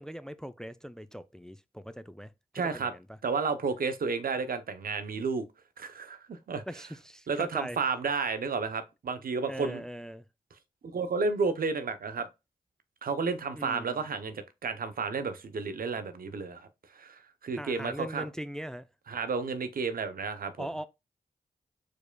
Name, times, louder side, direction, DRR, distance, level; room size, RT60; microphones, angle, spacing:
voice 1, 0.0-3.2 6.7-7.8 9.5-10.3 13.5-14.0 17.5-18.9 20.6-20.8, equal, 5° left, 0.4 m, -40 dB
voice 2, 2.5-2.9 3.2-5.5 5.8-6.6 7.3-9.8 10.8-12.3 13.0-18.3 19.1-20.7, right 4 dB, 70° right, 0.7 m, -32 dB
4.6 x 4.5 x 2.2 m
cardioid pair, 45°, 15 cm